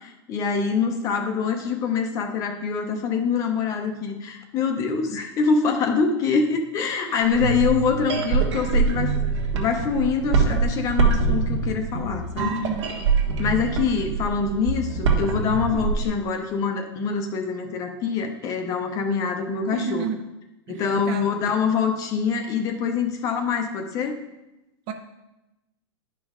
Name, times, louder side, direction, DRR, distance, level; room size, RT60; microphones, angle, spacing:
voice 1, 0.0-9.1 9.5-12.6 13.4-20.1 20.7-24.2, left 5 dB, 20° left, 5 dB, 0.7 m, -25 dB
sound 1, 7.2-16.0, right 4 dB, 70° right, 1.5 m, -24 dB
voice 2, 12.6-13.1 19.7-20.2 20.7-21.3 24.9-25.0, right 6 dB, 30° right, 6 dB, 0.6 m, -31 dB
11.0 x 5.3 x 3.7 m, 0.97 s
supercardioid pair, 165°, 15 cm